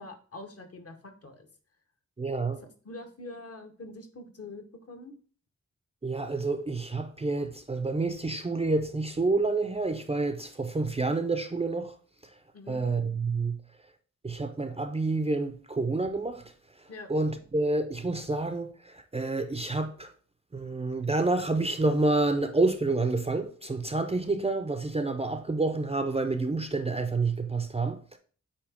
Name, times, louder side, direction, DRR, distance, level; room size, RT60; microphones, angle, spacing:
voice 1, 0.0-1.5 2.8-5.1 12.5-12.8 16.9-17.1, left 2 dB, 50° left, 1.0 m, -44 dB
voice 2, 2.2-2.6 6.0-11.9 12.7-13.6 14.2-16.4 17.1-20.1 20.5-28.2, right 3 dB, 20° right, 0.4 m, -28 dB
8.3 x 2.8 x 4.9 m
wide cardioid pair, 175°, 31 cm